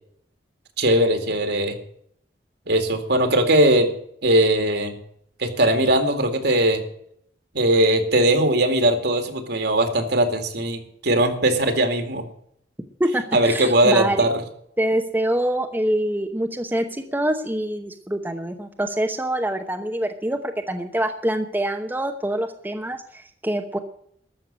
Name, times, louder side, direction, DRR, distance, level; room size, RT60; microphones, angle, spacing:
voice 1, 0.8-1.8 2.7-3.9 4.2-5.0 5.4-6.8 7.5-12.2 13.3-14.4, right 1 dB, 60° right, 6 dB, 2.2 m, -19 dB
voice 2, 13.0-14.3 14.8-23.8, right 1 dB, 10° right, 5 dB, 0.9 m, -25 dB
13.5 x 6.8 x 9.8 m, 0.68 s
head